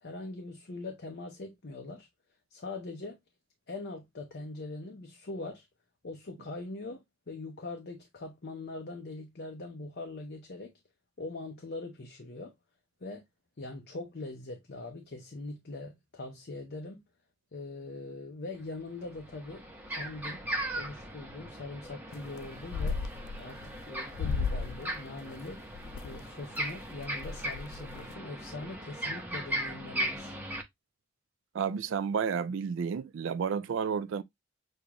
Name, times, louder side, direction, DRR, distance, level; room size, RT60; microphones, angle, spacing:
voice 1, 0.0-2.1 2.5-3.2 3.7-5.7 6.0-10.7 11.2-12.5 13.0-13.2 13.6-17.0 17.5-20.4 20.7-23.0 23.4-25.6 26.0-30.3, left 2 dB, 50° left, 0.7 m, -42 dB
sound 1, 18.5-18.6 19.0-30.6, right 1 dB, 10° right, 0.8 m, -38 dB
sound 2, 22.1-22.4 22.7-23.7 24.1-24.8 25.2-26.2 26.7-26.8 27.0-28.1, left 4 dB, 85° left, 0.3 m, -34 dB
voice 2, 31.5-34.2, right 6 dB, 65° right, 0.3 m, -31 dB
6.4 x 2.4 x 2.8 m
head